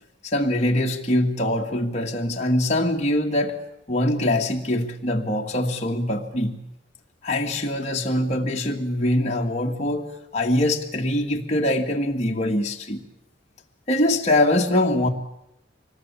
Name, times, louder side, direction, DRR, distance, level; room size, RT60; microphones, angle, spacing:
voice 1, 0.2-3.6 3.9-6.6 7.2-13.0 13.9-15.1, left 1 dB, 35° left, 2.0 m, -23 dB
25.0 x 20.0 x 8.4 m
head